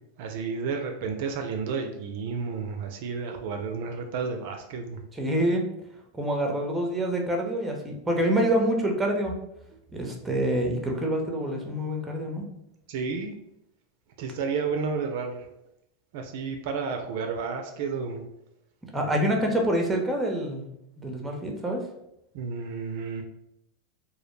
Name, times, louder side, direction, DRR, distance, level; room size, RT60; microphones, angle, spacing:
voice 1, 0.2-5.0 12.9-13.3 14.2-15.5 16.1-18.2 22.3-23.2, right 5 dB, 65° right, 5 dB, 0.3 m, -31 dB
voice 2, 5.1-5.6 6.1-9.4 9.9-12.5 18.9-20.6 21.0-21.9, right 1 dB, 10° right, 2 dB, 0.6 m, -26 dB
2.1 x 2.0 x 3.1 m, 0.81 s
hypercardioid pair, 115°, 0 cm